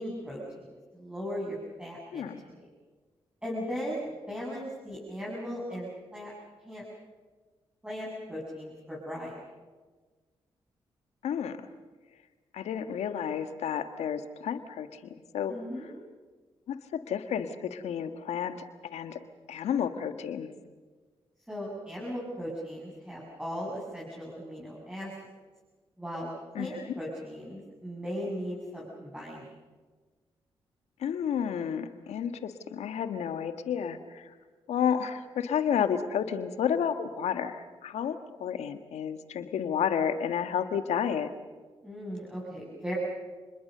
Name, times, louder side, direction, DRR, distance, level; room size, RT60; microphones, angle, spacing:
voice 1, 0.0-2.7 3.4-6.3 6.6-6.8 7.8-9.4 15.5-15.9 21.5-25.1 26.0-26.3 26.6-29.5 41.8-43.0, equal, 10° right, -5 dB, 7.8 m, -38 dB
voice 2, 2.1-2.4 11.2-11.6 12.5-15.0 15.3-15.5 16.7-18.6 18.9-19.2 19.5-20.5 26.5-26.8 31.0-34.2 34.7-41.3, left 8 dB, 80° left, 9 dB, 1.6 m, -31 dB
29.5 x 21.5 x 6.8 m, 1.4 s
supercardioid pair, 50°, 11 cm